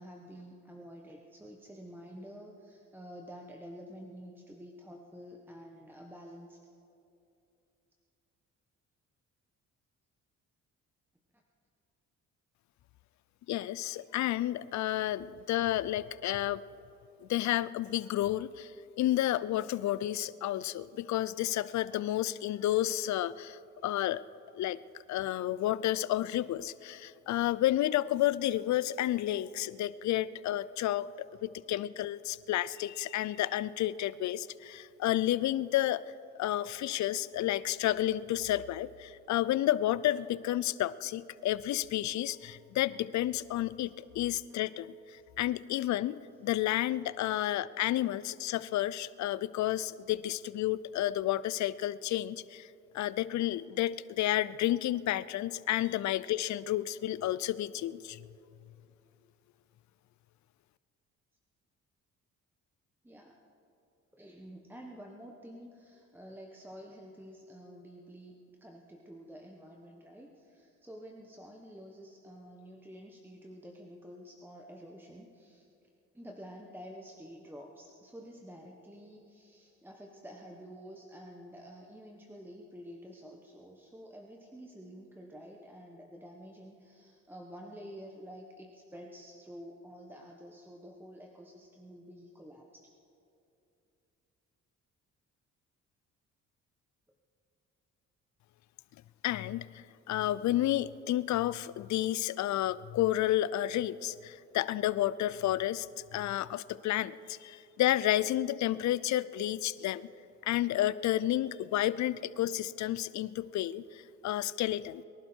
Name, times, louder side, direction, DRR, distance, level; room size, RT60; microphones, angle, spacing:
voice 1, 0.0-6.6 30.8-30.9 45.2-45.3 63.0-63.4 64.1-75.6 76.1-92.9, equal, 5° right, 1 dB, 1.3 m, -49 dB
voice 2, 13.5-16.6 17.2-18.7 19.0-24.2 24.5-24.8 25.1-36.0 36.4-52.7 52.9-58.2 99.2-110.1 110.4-115.0, left 13 dB, 70° left, 18 dB, 0.5 m, -31 dB
23.5 x 11.5 x 4.5 m, 2.7 s
cardioid pair, 90°, 30 cm